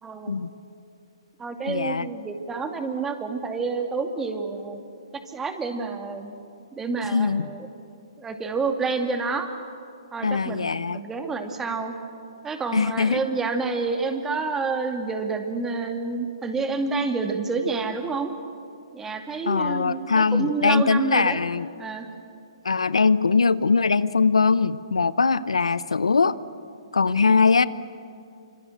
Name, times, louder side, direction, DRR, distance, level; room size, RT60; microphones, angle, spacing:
voice 1, 0.0-0.4 1.4-4.8 5.3-6.3 6.7-7.7 8.2-9.5 10.1-11.9 12.4-18.3 18.9-21.4 21.8-22.1, right 4 dB, 10° right, 5 dB, 2.4 m, -28 dB
voice 2, 1.7-2.1 7.1-7.5 10.2-11.0 12.7-13.2 19.5-21.7 22.6-26.4 26.9-27.7, left 4 dB, 85° left, 16 dB, 0.8 m, -21 dB
28.5 x 26.0 x 7.9 m, 2.5 s
hypercardioid pair, 135°, 3 cm